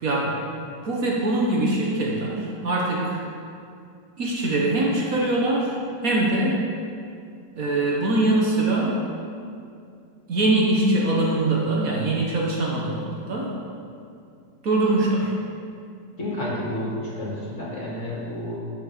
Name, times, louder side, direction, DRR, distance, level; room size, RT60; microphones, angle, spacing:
voice 1, 0.0-3.2 4.2-5.8 6.0-6.6 7.6-9.0 10.3-13.5 14.6-15.3, right 2 dB, 55° right, -3 dB, 1.5 m, -23 dB
voice 2, 16.2-18.6, left 1 dB, 45° left, -6 dB, 2.3 m, -30 dB
9.9 x 6.1 x 5.0 m, 2.4 s
omnidirectional pair, 2.0 m